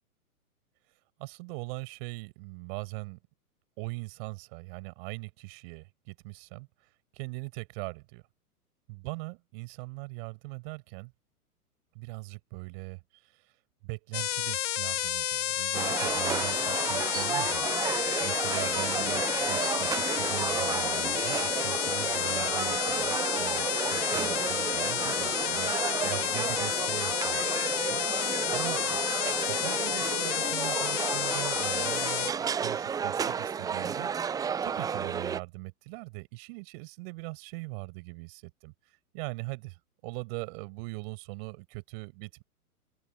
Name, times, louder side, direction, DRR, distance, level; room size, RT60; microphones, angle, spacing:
voice 1, 1.2-3.2 3.8-6.7 7.1-8.2 8.9-11.1 11.9-13.5 13.8-29.0 29.5-38.7 39.1-42.4, right 27 dB, 40° right, 6.8 m, -41 dB
sound 1, 14.1-32.3, left 13 dB, 50° left, 1.1 m, -30 dB
sound 2, 15.7-35.4, right 7 dB, 10° right, 0.7 m, -32 dB
open air
figure-of-eight pair, 115°, 45 cm